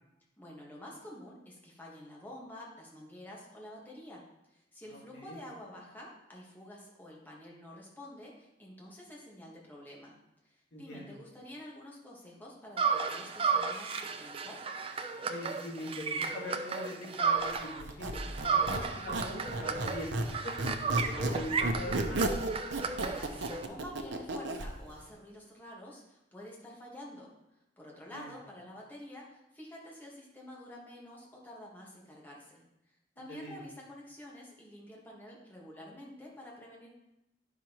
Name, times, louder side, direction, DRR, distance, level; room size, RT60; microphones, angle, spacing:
voice 1, 0.4-10.1 10.4-14.6 22.6-27.3 27.8-32.6 33.2-36.9, left 1 dB, 10° left, -3 dB, 1.4 m, -49 dB
voice 2, 4.9-5.4 10.7-11.2 15.3-20.1 20.4-22.3 28.1-28.3 33.2-33.6, left 1 dB, 70° left, -3 dB, 1.9 m, -42 dB
sound 1, 12.8-17.8 18.1-23.7, right 5 dB, 30° right, 0.5 m, -33 dB
Squeak, 17.8-20.3 20.6-24.7, right 1 dB, 85° right, 0.8 m, -33 dB
9.6 x 6.0 x 3.0 m, 0.88 s
head